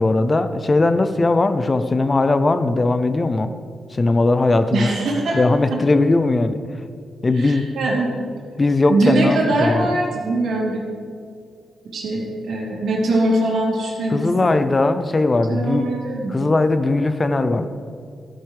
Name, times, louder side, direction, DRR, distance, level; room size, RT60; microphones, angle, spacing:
voice 1, 0.0-3.5 3.9-4.9 5.3-6.6 7.2-7.6 8.6-9.9 14.1-15.9 16.3-17.7, left 2 dB, 30° left, 10 dB, 0.6 m, -19 dB
voice 2, 4.7-5.4 7.3-8.2 8.9-10.8 11.9-14.5 15.5-16.5, right 2 dB, 80° right, -3 dB, 2.9 m, -22 dB
12.5 x 12.0 x 3.5 m, 2.2 s
cardioid pair, 85°, 0 cm